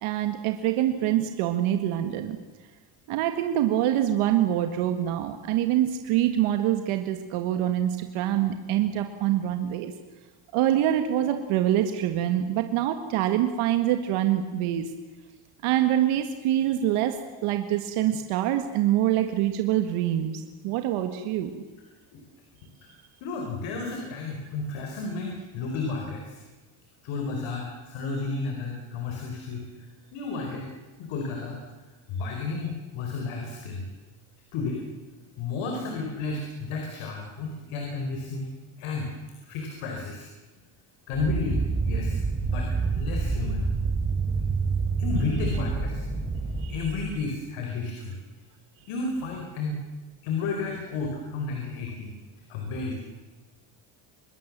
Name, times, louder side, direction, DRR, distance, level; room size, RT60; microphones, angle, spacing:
voice 1, 0.0-2.4 3.1-9.9 10.5-14.9 15.6-21.5 46.6-47.0, right 12 dB, 85° right, 6 dB, 1.9 m, -25 dB
voice 2, 23.2-26.4 27.0-29.6 30.1-30.7 31.0-31.6 32.1-33.8 34.5-34.8 35.4-39.1 39.4-40.3 41.1-42.7 42.9-43.7 45.0-46.0 46.7-48.1 48.9-49.8 50.2-52.1 52.5-53.0, left 3 dB, 80° left, 2 dB, 4.9 m, -32 dB
sound 1, 41.1-46.9, right 4 dB, 20° right, 3.6 m, -27 dB
25.5 x 21.5 x 7.5 m, 1.2 s
cardioid pair, 140°, 49 cm